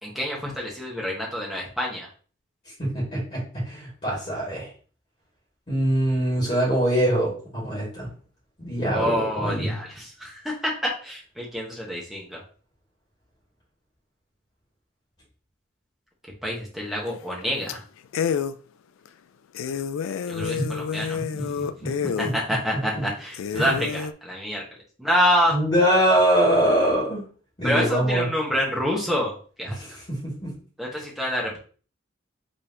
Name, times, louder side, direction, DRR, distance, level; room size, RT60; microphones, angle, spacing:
voice 1, 0.0-2.1 8.9-12.4 16.4-17.8 20.3-21.6 22.2-24.6 25.0-25.5 27.6-29.8 30.8-31.6, equal, ahead, -3 dB, 1.2 m, -27 dB
voice 2, 2.8-4.7 5.7-8.1 8.6-9.7 20.4-20.7 21.3-22.3 22.7-23.0 23.5-23.7 25.5-27.3 27.6-28.3 29.7-30.5, right 1 dB, 30° left, -6 dB, 2.3 m, -24 dB
sound 1, 17.1-17.4 17.7-17.8 18.1-18.6 19.1-19.2 19.5-22.3 22.9-23.0 23.3-24.1, left 7 dB, 90° left, 0.3 m, -28 dB
5.2 x 3.4 x 2.9 m, 0.40 s
head